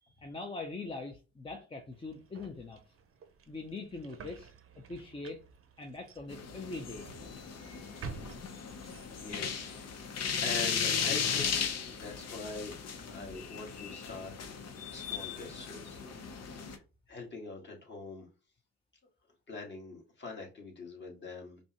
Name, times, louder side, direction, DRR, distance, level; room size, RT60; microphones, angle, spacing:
voice 1, 0.2-2.8 3.5-4.5 4.9-5.4 5.8-7.1, left 3 dB, 15° left, 1 dB, 0.7 m, -42 dB
sound 1, 1.9-9.4, right 5 dB, 45° right, 0.7 m, -51 dB
sound 2, 6.3-16.8, left 6 dB, 55° left, 0.9 m, -36 dB
voice 2, 9.2-12.8 13.1-14.5 14.9-16.0 16.4-16.8 17.1-18.3 19.5-21.6, left 3 dB, 35° left, -1 dB, 2.0 m, -44 dB
5.2 x 2.3 x 2.9 m, 0.32 s
cardioid pair, 90°, 30 cm